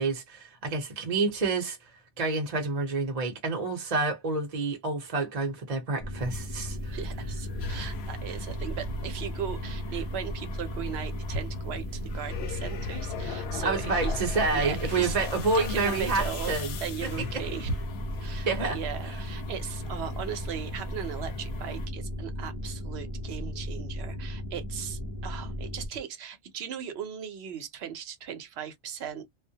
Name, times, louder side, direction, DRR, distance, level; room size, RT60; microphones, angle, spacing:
voice 1, 0.0-1.8 2.2-7.0 13.6-16.8 17.0-17.1 18.5-18.8, right 3 dB, 40° right, 0.7 m, -28 dB
sound 1, 6.0-25.9, equal, 40° left, 0.5 m, -36 dB
sound 2, 6.2-21.9, left 3 dB, 70° left, 0.8 m, -39 dB
voice 2, 6.9-14.2 14.5-15.2 15.5-17.7 18.2-29.3, right 8 dB, 75° right, 0.9 m, -37 dB
2.1 x 2.1 x 2.7 m
omnidirectional pair, 1.1 m